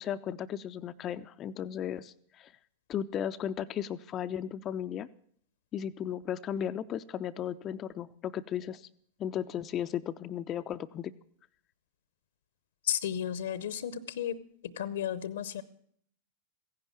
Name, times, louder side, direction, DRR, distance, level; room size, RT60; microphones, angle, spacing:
voice 1, 0.0-2.5 2.9-5.1 5.7-8.9 9.2-11.1, left 9 dB, 30° left, 11 dB, 0.5 m, -35 dB
voice 2, 12.9-14.3 14.8-15.6, left 10 dB, 60° left, 18 dB, 0.8 m, -33 dB
15.5 x 10.5 x 7.2 m, 0.63 s
figure-of-eight pair, 90°, 0 cm